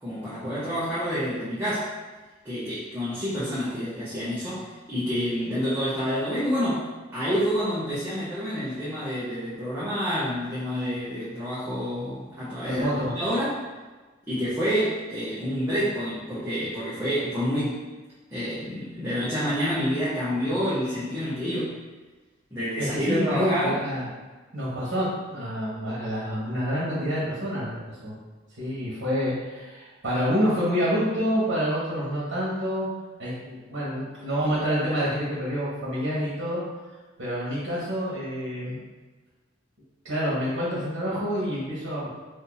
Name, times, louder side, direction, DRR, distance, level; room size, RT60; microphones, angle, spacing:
voice 1, 0.0-1.9 2.4-13.6 14.3-17.8 18.3-21.8 22.5-23.7, equal, 10° right, -11 dB, 0.7 m, -28 dB
voice 2, 12.7-13.1 22.8-24.1 24.5-28.1 28.6-32.9 33.2-36.6 37.2-38.8 40.0-42.1, equal, 70° right, -8 dB, 1.1 m, -27 dB
2.6 x 2.6 x 3.9 m, 1.3 s
head